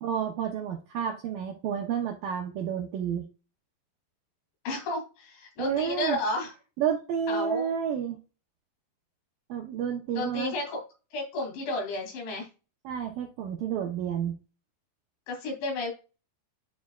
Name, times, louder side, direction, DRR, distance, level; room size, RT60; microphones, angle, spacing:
voice 1, 0.0-3.3 5.6-6.2 6.8-8.2 9.5-10.5 12.8-14.4, right 8 dB, 80° right, 2 dB, 2.0 m, -30 dB
voice 2, 4.6-6.5 7.3-7.7 10.1-10.8 11.1-12.5 15.3-15.9, left 2 dB, 90° left, 1 dB, 5.0 m, -32 dB
10.5 x 4.4 x 2.3 m, 0.32 s
omnidirectional pair, 5.1 m